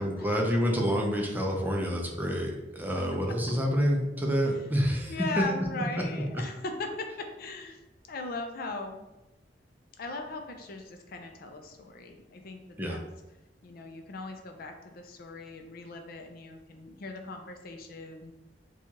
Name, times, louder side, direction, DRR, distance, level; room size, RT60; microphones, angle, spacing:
voice 1, 0.0-5.4 6.2-6.3 12.8-13.0, equal, 10° right, 0 dB, 0.5 m, -28 dB
voice 2, 5.1-7.8 8.1-9.0 10.0-13.0 13.6-18.3, left 2 dB, 55° left, 4 dB, 0.4 m, -39 dB
4.3 x 2.3 x 2.8 m, 1.0 s
head